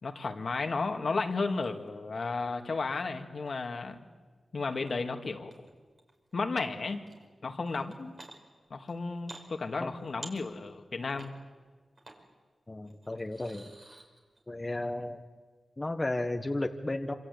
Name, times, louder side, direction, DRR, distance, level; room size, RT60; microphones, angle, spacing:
voice 1, 0.0-4.0 4.5-5.5 6.3-7.0 7.4-8.1 8.7-11.3, left 3 dB, 60° left, 5 dB, 2.3 m, -33 dB
sound 1, 1.6-1.8 2.3-3.5 4.9-5.0 5.5-6.3 6.9-7.3 7.6-8.4 8.9-9.4 9.8-10.8 11.1-11.3 12.0-12.2 12.8-14.4, right 2 dB, 50° right, 5.1 m, -50 dB
voice 2, 12.7-13.7 14.5-15.2 15.8-17.1, left 2 dB, 25° left, 5 dB, 1.5 m, -33 dB
27.0 x 26.0 x 8.5 m, 1.4 s
cardioid pair, 65°, 0 cm